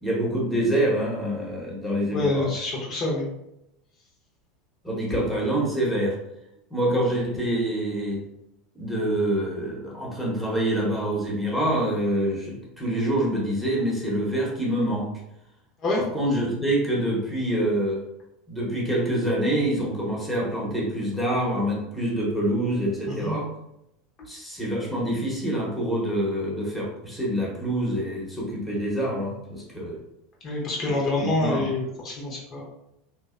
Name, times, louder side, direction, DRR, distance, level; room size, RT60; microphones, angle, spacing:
voice 1, 0.0-2.5 4.8-6.2 6.7-8.2 8.8-15.1 15.9-18.0 18.5-23.5 24.3-30.0 30.8-30.9 31.2-31.7, right 1 dB, 5° left, -4 dB, 0.9 m, -26 dB
voice 2, 2.1-3.3 15.8-16.0 23.1-23.3 30.4-32.6, left 2 dB, 45° left, -4 dB, 0.7 m, -26 dB
2.6 x 2.0 x 2.4 m, 0.83 s
hypercardioid pair, 80°, 0 cm